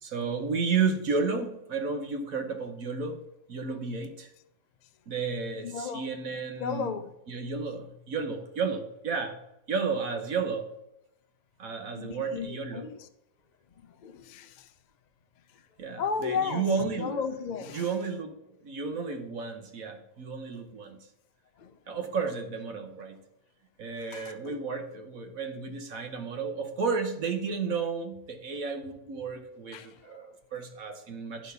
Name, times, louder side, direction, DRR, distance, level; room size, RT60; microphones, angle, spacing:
voice 1, 0.0-3.2 3.5-4.3 5.1-6.9 7.3-9.4 9.7-10.7 11.6-12.8 15.8-17.2 17.7-21.1 21.9-23.2 23.8-31.5, right 5 dB, 65° right, 1.3 m, -32 dB
voice 2, 5.6-6.1 6.6-7.1 12.0-13.1 13.8-14.7 15.5-15.6 16.0-17.9 21.6-21.8 24.0-24.6 29.7-30.3, left 6 dB, 55° left, 0.5 m, -35 dB
10.5 x 4.2 x 6.7 m
omnidirectional pair, 1.7 m